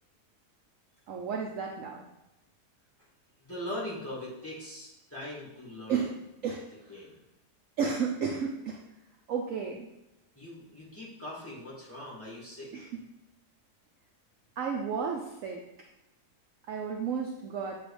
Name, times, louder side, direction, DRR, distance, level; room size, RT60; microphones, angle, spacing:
voice 1, 1.1-2.0 5.9-6.1 6.4-6.9 7.8-8.8 9.3-9.9 12.7-12.9 14.6-15.6 16.7-17.8, right 6 dB, 65° right, 0 dB, 0.9 m, -32 dB
voice 2, 3.4-6.0 6.9-7.1 10.3-12.9, left 1 dB, 10° left, -7 dB, 1.8 m, -41 dB
7.9 x 3.0 x 4.9 m, 0.96 s
omnidirectional pair, 1.7 m